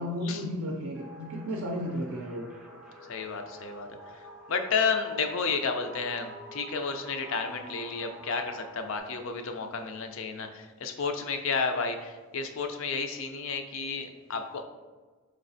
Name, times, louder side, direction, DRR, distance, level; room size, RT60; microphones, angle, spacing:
voice 1, 0.0-2.5, equal, 65° right, 0 dB, 0.4 m, -33 dB
sound 1, 0.9-9.0, right 1 dB, 5° right, 0.4 m, -47 dB
voice 2, 3.1-3.9 4.1-4.2 4.5-14.6, left 5 dB, 60° left, 6 dB, 0.4 m, -31 dB
4.7 x 3.2 x 2.6 m, 1.3 s
head